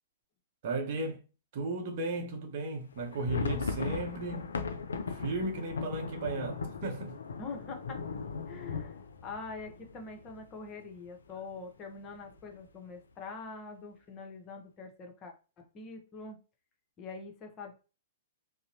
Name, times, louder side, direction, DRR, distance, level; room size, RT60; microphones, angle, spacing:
voice 1, 0.6-1.2 1.5-4.6 5.1-7.2, right 2 dB, 55° right, 0.7 m, -35 dB
sound 1, 2.9-10.7 11.0-11.1 11.3-11.6 12.1-12.6, left 5 dB, 80° left, 0.4 m, -38 dB
voice 2, 7.4-8.0 8.5-16.4 17.0-17.8, left 4 dB, 30° left, 0.8 m, -44 dB
2.7 x 2.0 x 2.6 m
hypercardioid pair, 120°, 0 cm